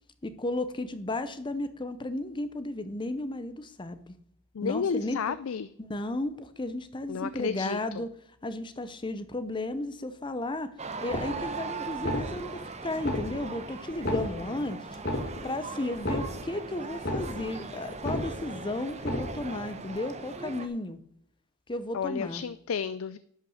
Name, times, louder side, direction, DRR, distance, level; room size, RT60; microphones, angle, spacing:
voice 1, 0.2-4.1 4.6-5.3 5.8-8.1 8.4-10.7 11.0-14.8 15.4-21.0 21.7-22.4, left 2 dB, 20° left, 11 dB, 0.6 m, -34 dB
voice 2, 4.5-5.7 7.1-7.8 21.9-23.2, left 6 dB, 75° left, 14 dB, 0.4 m, -31 dB
sound 1, 10.8-20.7, right 4 dB, 30° right, 0.9 m, -40 dB
sound 2, 11.1-11.6 11.9-12.6 13.0-13.6 13.9-14.6 15.0-15.6 15.9-16.6 16.9-17.6 17.9-18.6 19.0-19.6, left 1 dB, 50° left, 2.2 m, -33 dB
11.5 x 5.7 x 6.4 m, 0.70 s
head